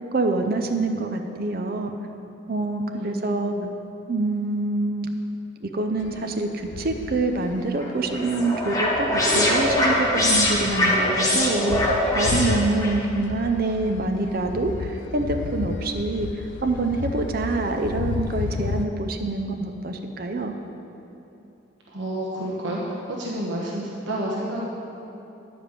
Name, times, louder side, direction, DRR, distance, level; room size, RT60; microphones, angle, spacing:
voice 1, 0.1-1.9 2.5-3.5 4.1-5.1 5.6-20.5, right 2 dB, 50° right, 5 dB, 0.5 m, -26 dB
voice 2, 2.9-3.7 21.9-24.7, right 1 dB, 70° right, -4 dB, 1.1 m, -30 dB
sound 1, 6.0-7.7 8.2-8.5 9.1-9.8 10.0-10.1 10.4-10.5 10.6-18.9, left 4 dB, 65° left, 0.4 m, -32 dB
sound 2, 7.8-13.0, left 1 dB, 20° left, 1.1 m, -22 dB
9.9 x 5.1 x 7.3 m, 2.9 s
head